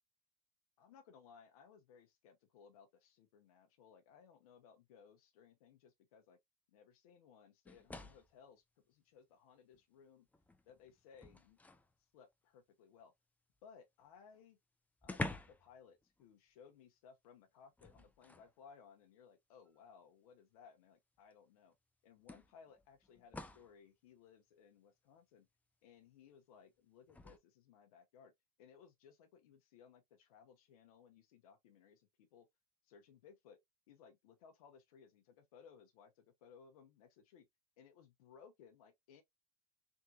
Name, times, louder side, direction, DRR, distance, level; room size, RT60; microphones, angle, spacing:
voice 1, 0.8-6.4 6.7-10.3 10.6-11.6 12.1-13.1 13.6-14.6 15.0-21.7 22.0-25.5 25.8-28.3 28.6-32.5 32.9-33.6 33.9-37.5 37.8-39.2, left 6 dB, 75° left, 0.8 m, -62 dB
sound 1, 7.6-8.4 9.7-9.8 10.3-11.9 14.0-14.1 14.3-14.4 15.0-15.7 16.0-16.2 17.8-18.5 19.7-19.8 21.3-21.4 22.3-23.7 27.1-27.4, left 2 dB, 10° left, 0.5 m, -47 dB
3.6 x 2.7 x 2.4 m
hypercardioid pair, 90°, 19 cm